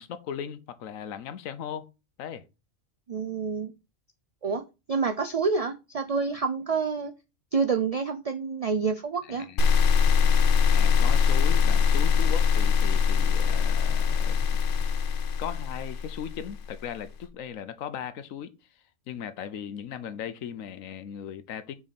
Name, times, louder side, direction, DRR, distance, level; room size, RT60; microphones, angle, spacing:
voice 1, 0.0-1.9 2.2-2.4 9.2-9.6 10.6-14.5 15.4-18.5 19.1-21.8, left 8 dB, 85° left, 1.2 m, -38 dB
voice 2, 3.1-3.7 4.4-4.6 4.9-7.1 7.5-9.4, right 5 dB, 55° right, 0.4 m, -28 dB
sound 1, 9.6-16.7, left 6 dB, 55° left, 0.6 m, -22 dB
6.2 x 4.8 x 4.2 m
omnidirectional pair, 1.4 m